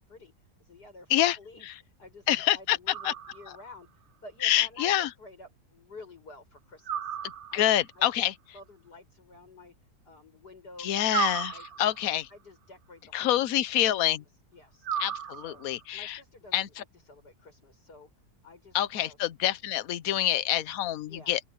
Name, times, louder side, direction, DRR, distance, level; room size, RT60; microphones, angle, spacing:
voice 1, 0.0-9.7 10.1-11.2 11.5-13.7 14.0-14.9 15.3-15.7 15.9-18.1 18.4-19.2 21.1-21.4, left 2 dB, 85° left, 8.0 m, -51 dB
voice 2, 2.3-2.8 3.0-3.1 4.4-5.1 7.5-8.3 10.8-11.5 11.8-12.3 13.1-14.2 15.0-16.2 16.5-16.8 18.7-21.4, left 12 dB, 65° left, 1.2 m, -26 dB
sound 1, 2.9-3.8 6.8-7.9 11.1-12.2 14.8-15.8, right 9 dB, 80° right, 0.4 m, -34 dB
open air
omnidirectional pair, 1.7 m